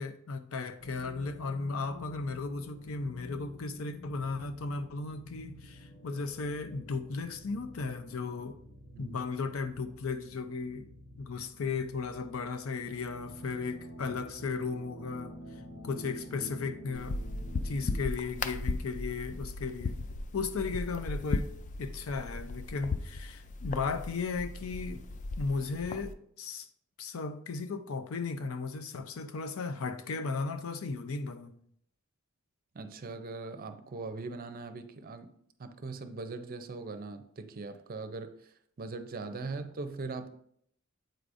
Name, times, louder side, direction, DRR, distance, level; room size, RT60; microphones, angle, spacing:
voice 1, 0.0-8.6 9.0-10.9 11.2-15.3 15.8-17.2 17.6-20.0 20.3-21.5 21.8-25.0 25.4-26.7 27.0-31.6, left 4 dB, 90° left, 0.5 m, -36 dB
sound 1, 0.8-18.0, equal, 70° left, 1.0 m, -48 dB
sound 2, 16.9-26.1, left 3 dB, 35° left, 0.3 m, -37 dB
voice 2, 32.7-35.3 35.6-40.3, right 3 dB, 45° right, 0.5 m, -41 dB
7.7 x 4.8 x 2.6 m
head